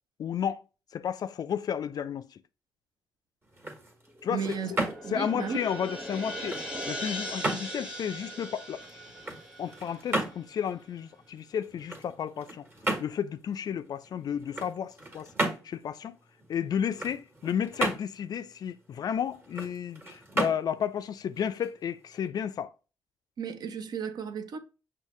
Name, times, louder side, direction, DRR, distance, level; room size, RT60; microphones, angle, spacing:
voice 1, 0.2-0.6 0.9-2.4 4.2-4.5 5.1-6.6 6.9-8.8 9.6-12.7 13.0-15.3 15.6-16.2 16.5-22.7, left 8 dB, 55° left, 0.4 m, -32 dB
sound 1, 3.4-22.3, right 1 dB, 30° right, 1.4 m, -36 dB
sound 2, 4.1-10.7, equal, 5° right, 1.1 m, -40 dB
voice 2, 4.3-4.7 5.0-5.6 23.4-24.6, right 6 dB, 60° right, 0.6 m, -34 dB
5.5 x 2.1 x 3.1 m
supercardioid pair, 65°, 8 cm